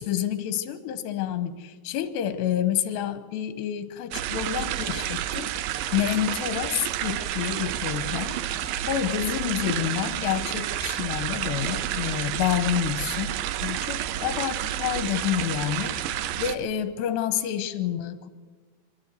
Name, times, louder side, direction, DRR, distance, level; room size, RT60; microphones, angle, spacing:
voice 1, 0.0-5.5 5.9-18.3, left 10 dB, 80° left, 11 dB, 3.2 m, -29 dB
sound 1, 4.1-16.6, right 12 dB, 85° right, 2.0 m, -30 dB
24.0 x 14.0 x 8.3 m, 1.4 s
omnidirectional pair, 5.0 m